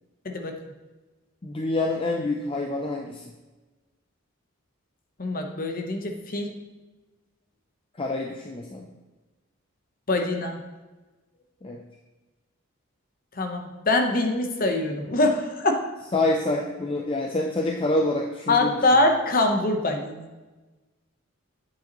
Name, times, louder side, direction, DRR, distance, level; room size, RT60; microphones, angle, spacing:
voice 1, 1.4-3.2 8.0-8.9 11.6-11.8 16.1-18.9, left 2 dB, 25° left, 1 dB, 0.5 m, -27 dB
voice 2, 5.2-6.5 10.1-10.6 13.4-15.9 18.5-20.3, left 2 dB, 45° left, 4 dB, 0.9 m, -24 dB
8.7 x 7.8 x 3.0 m, 1.2 s
head